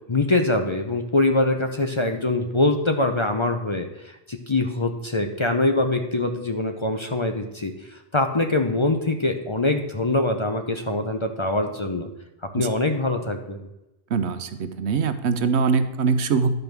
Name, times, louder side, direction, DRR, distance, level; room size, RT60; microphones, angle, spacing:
voice 1, 0.1-12.1 12.4-13.7, left 2 dB, 30° left, 5 dB, 0.7 m, -24 dB
voice 2, 14.1-16.5, right 5 dB, 80° right, 11 dB, 1.0 m, -22 dB
11.0 x 5.3 x 6.1 m, 0.95 s
omnidirectional pair, 1.1 m